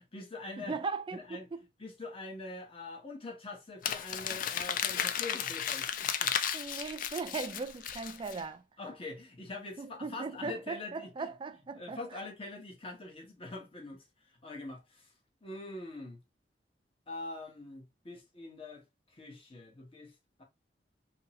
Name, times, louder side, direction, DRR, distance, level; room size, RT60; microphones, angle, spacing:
voice 1, 0.0-0.7 1.1-1.5 1.8-6.3 8.8-11.3 11.7-14.0 14.4-15.1 15.4-16.2 17.1-18.8 19.2-20.4, left 2 dB, 30° left, 0.9 m, -44 dB
voice 2, 0.6-1.4 6.5-8.6 9.8-12.2, right 4 dB, 30° right, 0.3 m, -38 dB
Crumpling crinkling, 3.8-8.4, left 9 dB, 50° left, 0.3 m, -34 dB
2.8 x 2.7 x 2.8 m
head